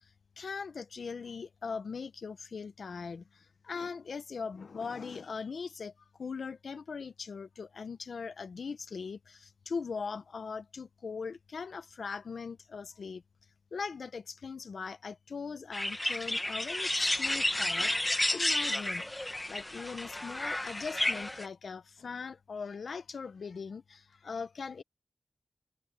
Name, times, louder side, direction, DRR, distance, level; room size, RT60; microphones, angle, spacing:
voice 1, 0.4-5.9 6.2-13.2 13.7-19.0 19.5-24.8, left 5 dB, 75° left, 0.8 m, -40 dB
sound 1, 15.7-21.5, left 1 dB, 15° left, 1.0 m, -31 dB
wide cardioid pair, 95°, 0 cm